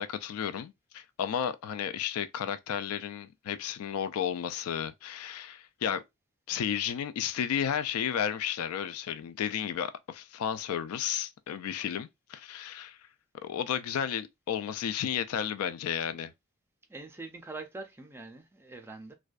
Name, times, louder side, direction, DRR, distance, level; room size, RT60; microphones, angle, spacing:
voice 1, 0.0-6.0 6.5-13.0 13.4-16.3, left 8 dB, 75° left, 0.3 m, -33 dB
voice 2, 16.9-19.1, right 3 dB, 10° right, 0.3 m, -43 dB
2.5 x 2.1 x 2.3 m
head